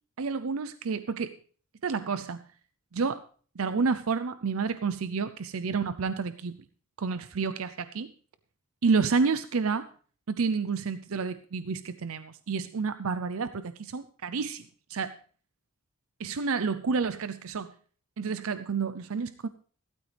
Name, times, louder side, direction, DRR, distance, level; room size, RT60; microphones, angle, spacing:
voice 1, 0.2-1.3 1.8-2.4 2.9-3.2 3.6-6.6 7.0-8.1 8.8-9.9 10.3-15.1 16.2-17.7 18.2-19.5, right 5 dB, 70° right, 12 dB, 0.6 m, -29 dB
15.5 x 13.0 x 3.3 m, 0.43 s
head